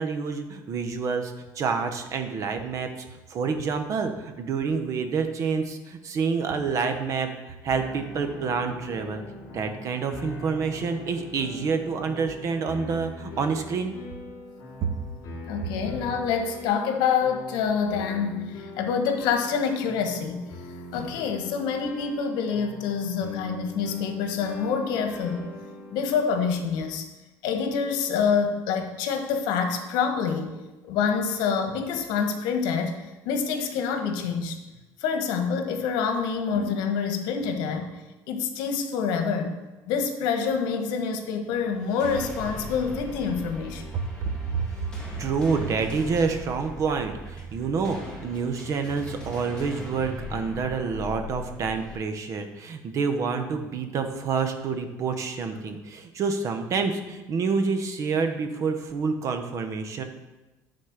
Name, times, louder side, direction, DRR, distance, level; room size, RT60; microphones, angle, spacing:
voice 1, 0.0-9.2 9.5-14.0 43.9-44.6 45.2-60.0, right 5 dB, 45° right, 7 dB, 1.0 m, -28 dB
sound 1, 7.7-27.0, left 2 dB, 55° left, 2.9 m, -42 dB
voice 2, 15.5-20.5 20.9-25.5 25.9-27.0 27.4-30.5 30.8-34.6 35.0-37.9 38.3-39.6 39.9-43.8, left 6 dB, 80° left, 6 dB, 1.2 m, -26 dB
sound 2, 41.8-52.0, equal, 10° left, 2.3 m, -39 dB
9.8 x 4.3 x 6.6 m, 1.1 s
cardioid pair, 130°, 7 cm